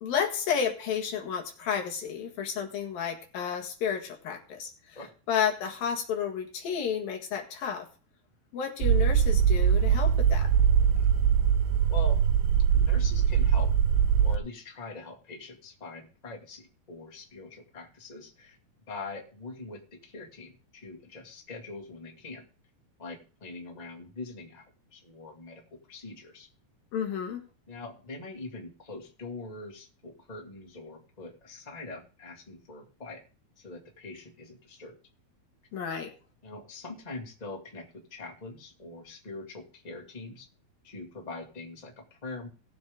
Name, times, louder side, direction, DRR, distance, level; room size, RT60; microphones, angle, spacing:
voice 1, 0.0-5.0 5.3-7.9 8.5-10.5 26.9-27.4 35.7-36.1, left 7 dB, 75° left, 3 dB, 3.5 m, -31 dB
sound 1, 8.8-14.4, right 8 dB, 90° right, 2.5 m, -22 dB
voice 2, 11.9-12.2 12.7-13.7 14.2-18.6 18.9-22.4 23.0-26.5 27.7-33.2 33.6-35.0 36.4-40.5 40.8-42.5, left 3 dB, 15° left, 1 dB, 1.6 m, -43 dB
18.0 x 7.7 x 3.6 m, 0.37 s
omnidirectional pair, 4.2 m